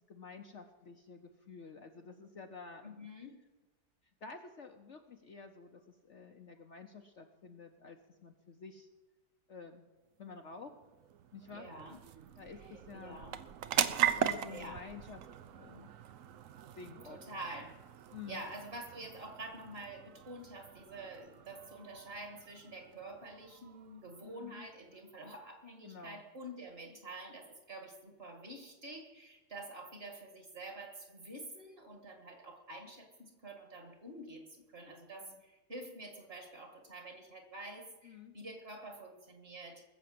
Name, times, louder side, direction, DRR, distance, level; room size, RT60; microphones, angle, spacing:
voice 1, 0.0-3.1 4.2-8.9 9.5-9.8 10.2-10.7 11.3-11.7 12.4-13.2 14.0-15.9 16.8-17.2 18.1-18.4 24.2-24.7 25.8-26.2 35.2-35.4 38.0-38.3, left 5 dB, 55° left, 5 dB, 1.0 m, -50 dB
voice 2, 2.8-3.4 11.5-12.0 12.5-14.0 14.5-14.9 17.1-17.8 18.3-39.8, right 1 dB, 35° right, 4 dB, 2.1 m, -48 dB
sound 1, 10.3-25.2, right 10 dB, 60° right, 0.9 m, -40 dB
20.5 x 7.0 x 7.7 m, 1.2 s
omnidirectional pair, 1.8 m